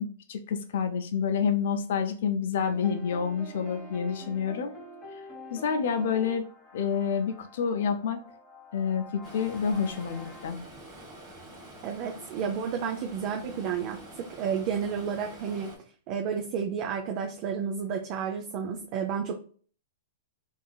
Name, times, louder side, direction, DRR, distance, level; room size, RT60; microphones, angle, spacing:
voice 1, 0.0-4.7 5.5-6.4 6.7-8.2 8.7-10.6, left 6 dB, 65° left, 6 dB, 0.5 m, -28 dB
sound 1, 2.6-10.5, left 2 dB, 20° left, 1.5 m, -47 dB
Stream, 9.2-15.8, right 1 dB, 25° right, 1.4 m, -47 dB
voice 2, 11.8-15.7 16.1-19.3, right 7 dB, 40° right, 3 dB, 0.5 m, -31 dB
3.6 x 2.5 x 2.3 m, 0.43 s
hypercardioid pair, 130°, 0 cm